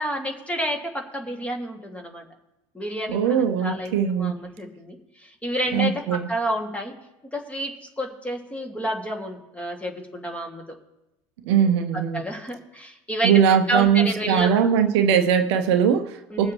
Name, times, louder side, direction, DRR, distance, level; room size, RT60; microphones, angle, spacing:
voice 1, 0.0-2.3 2.7-6.9 7.3-10.8 11.5-14.7 16.3-16.5, equal, 10° left, 2.2 m, -30 dB
voice 2, 3.1-4.3 5.7-6.3 11.4-12.2 13.2-16.5, right 8 dB, 60° right, 0.8 m, -20 dB
21.5 x 7.2 x 3.1 m
figure-of-eight pair, 70°, 16 cm